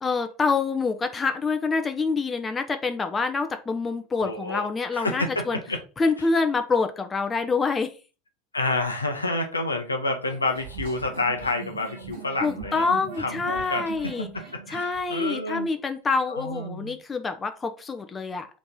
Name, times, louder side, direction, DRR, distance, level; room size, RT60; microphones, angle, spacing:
voice 1, 0.0-5.6 6.0-7.9 12.4-14.3 14.7-18.5, left 4 dB, 20° left, 8 dB, 0.6 m, -26 dB
voice 2, 4.2-4.7 4.9-5.8 8.5-12.9 13.2-15.7 16.3-17.0, left 2 dB, 80° left, 4 dB, 0.8 m, -29 dB
sound 1, 10.3-15.2, right 6 dB, 60° right, 1.0 m, -41 dB
3.9 x 3.0 x 3.7 m, 0.34 s
figure-of-eight pair, 75°, 0 cm